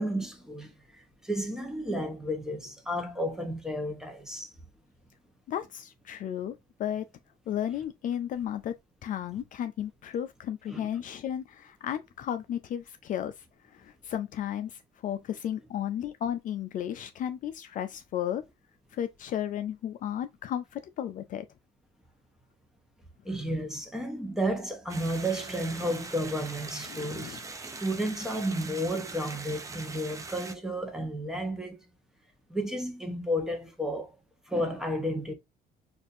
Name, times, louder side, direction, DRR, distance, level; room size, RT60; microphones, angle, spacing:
voice 1, 0.0-4.5 10.7-10.9 23.2-27.4 27.8-31.8 32.5-34.1 34.5-35.3, equal, 5° right, 0.9 m, -32 dB
voice 2, 5.5-7.0 7.5-8.7 9.0-18.4 18.9-21.5 26.9-27.4, left 10 dB, 50° left, 0.4 m, -34 dB
sound 1, 24.9-30.5, right 3 dB, 20° right, 0.5 m, -42 dB
4.1 x 2.5 x 2.5 m
cardioid pair, 110°, 17 cm